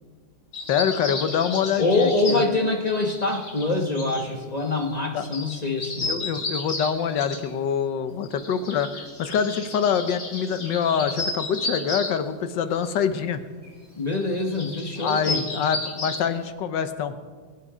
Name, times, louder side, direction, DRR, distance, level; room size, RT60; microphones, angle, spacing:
sound 1, 0.5-2.6 2.9-4.3 4.6-4.9 5.2-7.5 8.2-12.1 12.7-13.2 13.6-13.7 14.1-16.4, left 2 dB, 50° left, 2.4 m, -33 dB
voice 1, 0.7-2.4 5.1-5.3 6.0-13.4 15.0-17.2, left 7 dB, 75° left, 10 dB, 1.5 m, -25 dB
voice 2, 1.8-6.2 14.0-15.4, left 2 dB, 25° left, 2 dB, 1.0 m, -24 dB
22.5 x 9.0 x 5.0 m, 1.5 s
omnidirectional pair, 2.0 m